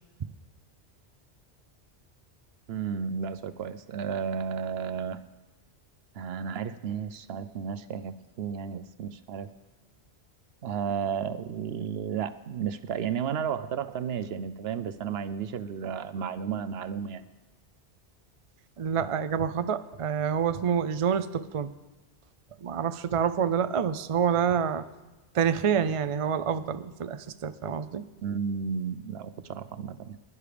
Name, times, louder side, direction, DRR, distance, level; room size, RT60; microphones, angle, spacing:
voice 1, 2.7-5.2 6.1-9.5 10.6-17.3 28.2-30.2, right 7 dB, 70° right, 13 dB, 0.8 m, -33 dB
voice 2, 18.8-21.7 22.6-24.8 25.3-28.0, right 7 dB, 50° right, 12 dB, 0.4 m, -27 dB
21.0 x 11.0 x 3.4 m, 1.1 s
omnidirectional pair, 1.1 m